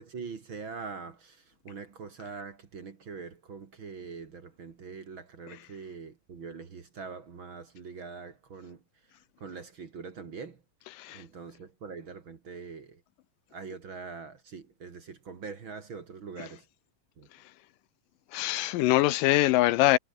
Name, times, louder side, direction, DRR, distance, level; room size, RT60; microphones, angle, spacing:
voice 1, 0.0-8.8 9.4-10.6 11.1-13.0 13.5-16.7 17.2-17.3, right 5 dB, 40° right, 2.4 m, -43 dB
voice 2, 18.3-20.0, left 16 dB, 80° left, 2.4 m, -23 dB
omnidirectional pair, 4.0 m